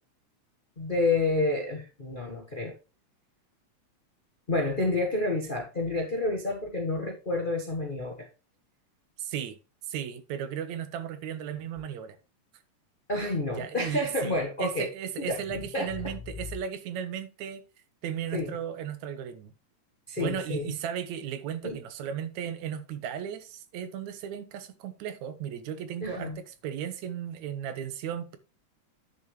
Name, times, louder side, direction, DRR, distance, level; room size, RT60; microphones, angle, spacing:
voice 1, 0.8-2.7 4.5-8.3 13.1-14.9 15.2-15.4 15.7-15.9 18.3-18.5 20.1-20.7 21.6-21.8 26.0-26.4, left 2 dB, 70° left, 0.4 m, -29 dB
voice 2, 9.2-9.6 9.9-12.2 13.5-17.6 18.0-19.5 20.2-28.4, right 9 dB, 75° right, 2.2 m, -35 dB
10.0 x 6.9 x 3.1 m
omnidirectional pair, 3.4 m